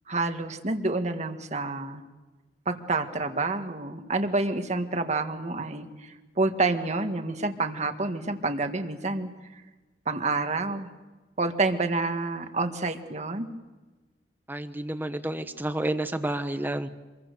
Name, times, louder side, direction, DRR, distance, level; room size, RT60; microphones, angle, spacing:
voice 1, 0.1-2.1 2.7-9.3 10.1-10.9 11.4-13.5, right 3 dB, 40° right, 6 dB, 1.8 m, -28 dB
voice 2, 14.5-16.9, right 1 dB, 10° right, 9 dB, 1.1 m, -30 dB
26.5 x 22.5 x 6.8 m, 1.2 s
head